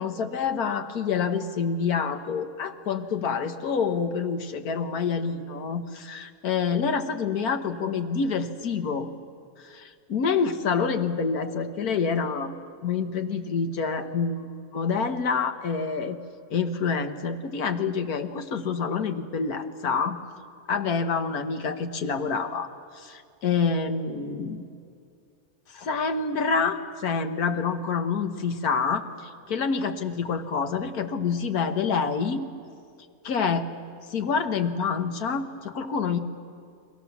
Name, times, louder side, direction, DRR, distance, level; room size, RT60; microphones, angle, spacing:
voice 1, 0.0-9.1 9.6-12.6 12.8-16.2 16.5-20.2 20.7-22.7 22.9-24.6 25.7-32.4 33.2-33.7 34.1-36.2, left 5 dB, 85° left, 8 dB, 1.7 m, -27 dB
29.5 x 22.0 x 7.1 m, 2.4 s
omnidirectional pair, 1.5 m